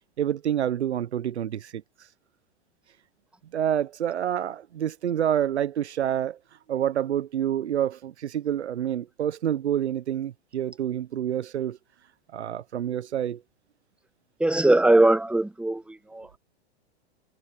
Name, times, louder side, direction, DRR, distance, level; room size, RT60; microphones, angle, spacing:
voice 1, 0.2-1.8 3.5-6.4 6.7-11.8 12.3-13.4, right 10 dB, 80° right, 1.2 m, -27 dB
voice 2, 14.4-16.4, right 2 dB, 5° right, 1.7 m, -21 dB
hypercardioid pair, 105°, 33 cm